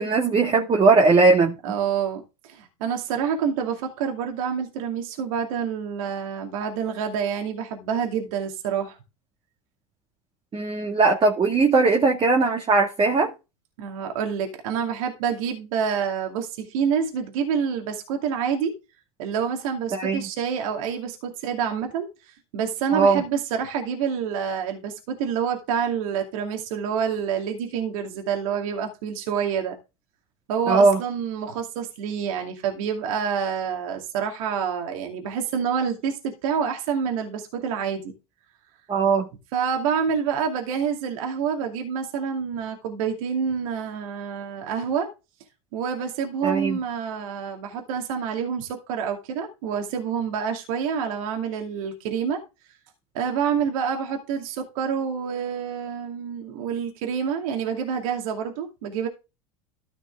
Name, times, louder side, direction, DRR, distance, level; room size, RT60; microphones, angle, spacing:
voice 1, 0.0-1.5 10.5-13.3 19.9-20.2 22.9-23.2 30.7-31.0 38.9-39.3 46.4-46.8, right 4 dB, 30° right, 2.1 m, -19 dB
voice 2, 1.6-9.0 13.8-18.7 19.2-29.8 30.5-38.1 39.5-45.1 45.7-52.4 53.1-59.1, right 7 dB, 70° right, 2.4 m, -27 dB
13.5 x 5.9 x 3.6 m
hypercardioid pair, 85°, 18 cm